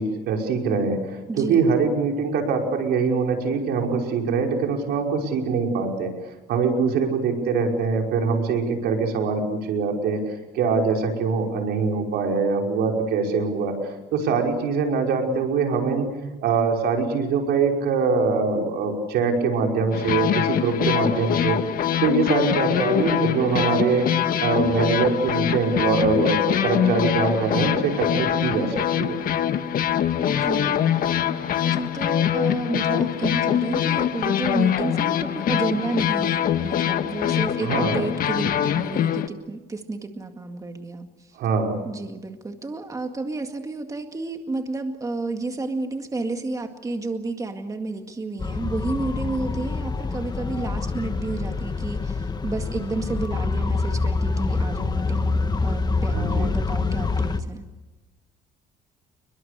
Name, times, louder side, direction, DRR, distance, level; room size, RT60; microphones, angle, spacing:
voice 1, 0.0-16.1 16.4-21.6 22.0-24.1 24.4-29.2 37.6-38.0 41.4-41.8 56.1-56.5, right 4 dB, 80° right, 2 dB, 5.4 m, -23 dB
voice 2, 1.3-1.8 30.2-30.9 31.7-41.4 41.8-57.6, right 3 dB, 20° right, 5 dB, 2.0 m, -31 dB
sound 1, 19.9-39.3, left 10 dB, 60° left, 1.4 m, -23 dB
sound 2, 48.4-57.4, left 3 dB, 25° left, 1.7 m, -26 dB
29.5 x 22.5 x 6.8 m, 1.2 s
cardioid pair, 110°, 17 cm